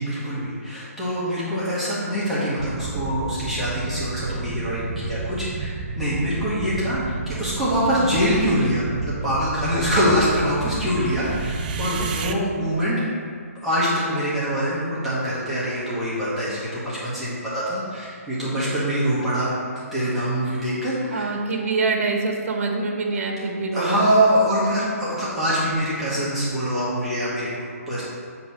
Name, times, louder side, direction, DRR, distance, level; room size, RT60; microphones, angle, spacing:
voice 1, 0.0-13.0 13.6-19.5 19.9-21.3 23.7-28.1, equal, ahead, -12 dB, 1.0 m, -24 dB
sound 1, 2.6-12.3, right 4 dB, 30° right, 0.4 m, -31 dB
voice 2, 21.1-24.1, right 3 dB, 55° right, 2 dB, 1.1 m, -25 dB
7.8 x 3.0 x 5.5 m, 2.3 s
hypercardioid pair, 165°, 8 cm